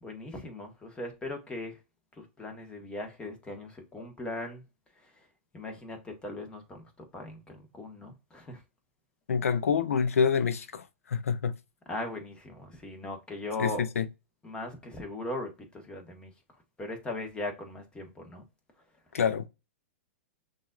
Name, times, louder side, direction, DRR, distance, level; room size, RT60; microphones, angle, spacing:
voice 1, 0.0-1.8 2.2-4.6 5.5-6.8 7.1-8.6 11.9-13.8 14.4-16.3 16.8-18.4, left 2 dB, 15° left, 1.3 m, -39 dB
voice 2, 9.3-11.5 13.6-14.1 19.1-19.5, left 6 dB, 90° left, 0.7 m, -27 dB
5.9 x 2.6 x 2.4 m
hypercardioid pair, 130°, 7 cm